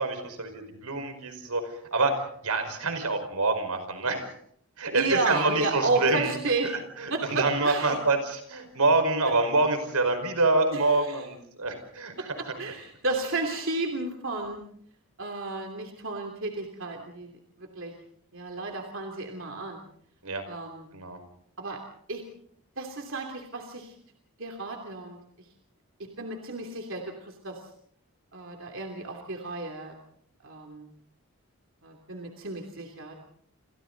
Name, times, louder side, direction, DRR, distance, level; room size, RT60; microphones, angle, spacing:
voice 1, 0.0-1.6 1.9-4.3 4.8-6.3 7.0-12.1 20.2-20.4 20.9-21.2, right 3 dB, 85° right, 7 dB, 5.0 m, -26 dB
voice 2, 4.9-6.7 7.1-8.0 9.3-9.4 10.7-11.3 12.2-14.6 15.2-17.9 18.3-19.8 20.5-20.9 21.6-21.8 22.1-22.2 22.8-23.9 24.4-25.2 26.2-27.6 28.3-30.0 30.4-30.9 31.8-33.1, right 3 dB, 60° right, 2 dB, 3.0 m, -32 dB
28.5 x 27.5 x 4.0 m, 0.64 s
head